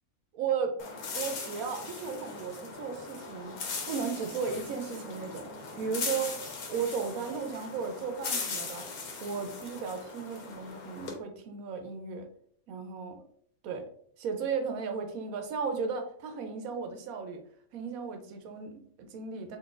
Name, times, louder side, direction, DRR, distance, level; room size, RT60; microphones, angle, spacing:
voice 1, 0.3-0.8 1.1-5.5 5.8-6.4 6.7-8.9 9.2-12.3 12.7-13.2 13.6-13.9 14.2-17.4 17.7-19.6, right 5 dB, 75° right, 6 dB, 1.0 m, -35 dB
sound 1, 0.8-11.1, left 4 dB, 85° left, 1.2 m, -39 dB
3.8 x 2.9 x 2.4 m, 0.64 s
omnidirectional pair, 1.5 m